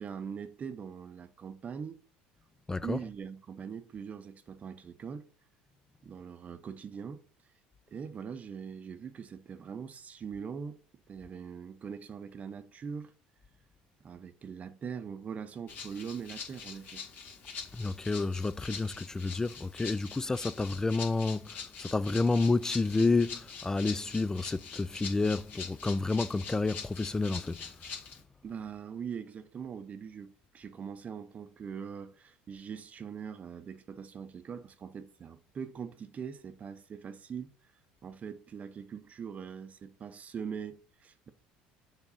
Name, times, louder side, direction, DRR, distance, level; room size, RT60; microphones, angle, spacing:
voice 1, 0.0-2.0 2.8-5.3 6.0-7.2 7.9-10.8 11.1-13.1 14.0-17.0 28.4-37.5 38.0-41.3, right 7 dB, 35° right, 0.7 m, -42 dB
voice 2, 2.7-3.0 17.7-27.6, left 3 dB, 15° left, 0.4 m, -30 dB
Rattle (instrument), 15.7-28.2, left 6 dB, 55° left, 2.1 m, -44 dB
7.1 x 3.9 x 5.5 m
supercardioid pair, 90°, 4 cm